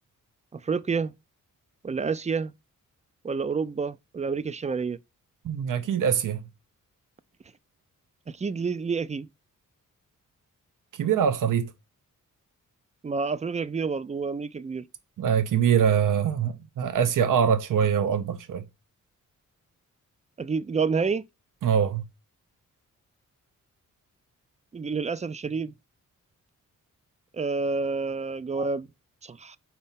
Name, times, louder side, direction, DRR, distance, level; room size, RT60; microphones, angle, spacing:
voice 1, 0.5-1.1 1.8-2.5 3.2-5.0 8.3-9.3 13.0-14.9 20.4-21.2 24.7-25.7 27.3-28.9 29.2-29.6, right 4 dB, 20° right, 0.4 m, -29 dB
voice 2, 5.4-6.4 10.9-11.7 15.2-18.6 21.6-22.0 28.5-28.7, right 8 dB, 75° right, 0.8 m, -24 dB
4.4 x 4.3 x 5.6 m
cardioid pair, 80°, 33 cm